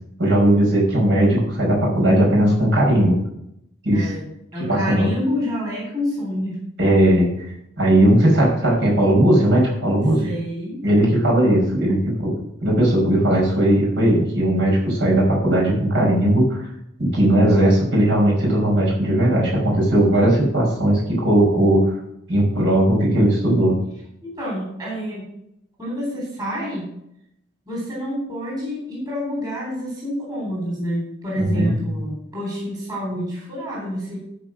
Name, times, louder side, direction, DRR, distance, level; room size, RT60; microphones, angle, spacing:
voice 1, 0.2-3.2 3.8-4.1 4.7-5.1 6.8-7.5 7.8-10.3 10.8-16.7 17.0-22.0 22.3-23.8 31.4-31.7, right 1 dB, 60° right, -3 dB, 5.3 m, -18 dB
voice 2, 3.9-4.2 4.5-6.6 10.2-10.8 20.2-20.3 24.2-25.3 25.8-26.9 27.7-34.2, equal, 20° right, -4 dB, 3.8 m, -28 dB
13.0 x 5.3 x 6.5 m, 0.77 s
head